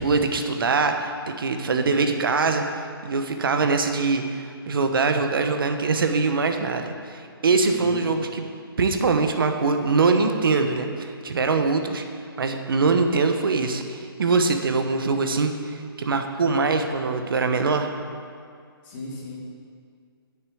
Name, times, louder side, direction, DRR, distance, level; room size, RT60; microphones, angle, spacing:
voice 1, 0.0-8.4 8.8-12.0 12.4-17.9, right 4 dB, 60° right, 6 dB, 1.0 m, -23 dB
voice 2, 1.7-2.2 7.7-8.1 18.8-19.4, left 2 dB, 25° left, -7 dB, 2.8 m, -35 dB
8.0 x 6.9 x 8.4 m, 2.2 s
hypercardioid pair, 160°, 13 cm